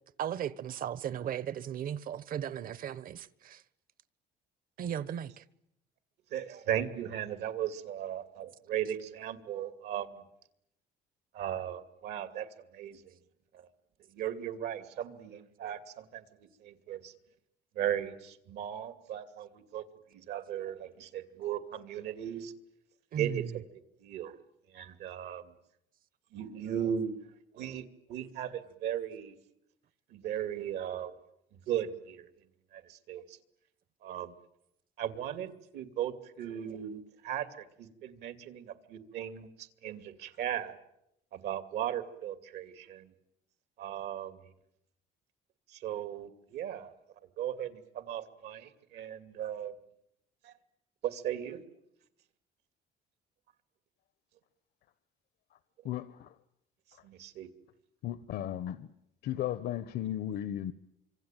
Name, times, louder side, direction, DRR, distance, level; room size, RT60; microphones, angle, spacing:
voice 1, 0.2-3.6 4.8-5.4 23.1-23.5, right 9 dB, 55° right, 1.3 m, -36 dB
voice 2, 6.3-10.2 11.3-12.5 12.7-13.0 13.5-13.7 14.1-16.2 16.6-17.1 17.7-19.8 20.1-22.5 23.2-24.4 24.7-25.5 26.3-27.2 27.5-29.3 30.1-31.1 31.7-32.3 32.7-33.4 34.0-34.3 35.0-40.8 41.3-43.1 43.8-44.4 45.7-46.9 47.4-49.7 50.4-50.5 51.0-51.6 57.0-57.5, right 10 dB, 75° right, 2.5 m, -37 dB
voice 3, 55.8-56.3 56.9-57.0 58.0-58.9 59.2-60.7, left 11 dB, 70° left, 1.0 m, -35 dB
26.0 x 24.5 x 9.1 m
cardioid pair, 110°, 17 cm